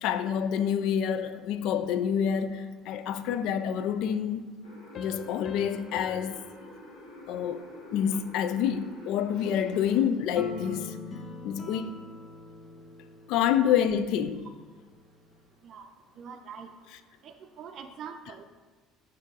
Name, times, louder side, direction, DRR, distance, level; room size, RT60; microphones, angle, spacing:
voice 1, 0.0-4.4 4.9-6.4 7.3-7.6 7.9-11.0 11.4-11.9 13.3-14.5 16.9-17.0 18.3-18.4, left 8 dB, 70° left, 0.3 m, -28 dB
sound 1, 4.6-10.0, equal, 90° left, 1.4 m, -48 dB
sound 2, 4.9-8.2, left 8 dB, 45° left, 0.7 m, -47 dB
sound 3, 10.3-14.8, left 2 dB, 30° left, 1.0 m, -43 dB
voice 2, 16.2-16.7 17.2-18.5, right 6 dB, 50° right, 0.5 m, -43 dB
5.7 x 3.7 x 4.7 m
hypercardioid pair, 70°, 0 cm